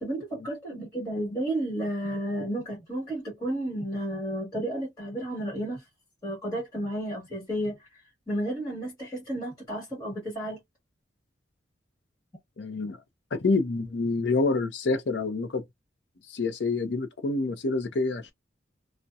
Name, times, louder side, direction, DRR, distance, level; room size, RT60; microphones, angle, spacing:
voice 1, 0.0-5.8 6.2-7.8 8.3-10.6, right 1 dB, 20° left, 1.2 m, -32 dB
voice 2, 12.6-13.0 13.3-15.6 16.3-18.3, left 3 dB, 65° left, 0.5 m, -27 dB
2.7 x 2.0 x 2.3 m
head